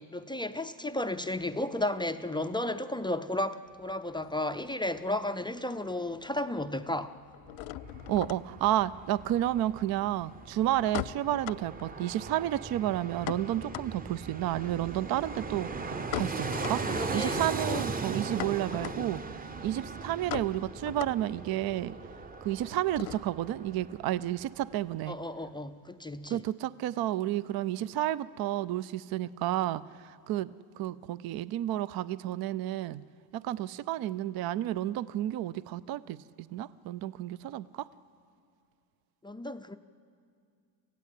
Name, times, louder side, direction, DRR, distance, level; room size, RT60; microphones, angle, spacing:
voice 1, 0.0-7.1 16.9-17.4 17.7-17.9 18.8-19.2 25.1-26.4 39.2-39.8, left 1 dB, 10° left, 9 dB, 0.5 m, -33 dB
sound 1, 3.7-5.3 5.6-6.3 6.5-23.5, left 18 dB, 75° left, 0.6 m, -42 dB
Fixed-wing aircraft airplane, 7.5-24.4 24.7-24.8, right 4 dB, 20° right, 0.8 m, -39 dB
voice 2, 8.1-16.8 17.1-22.0 22.4-25.2 26.3-33.0 33.3-36.2 36.5-37.9, right 13 dB, 50° right, 17 dB, 0.6 m, -31 dB
28.0 x 15.5 x 8.4 m, 2.3 s
cardioid pair, 110°, 49 cm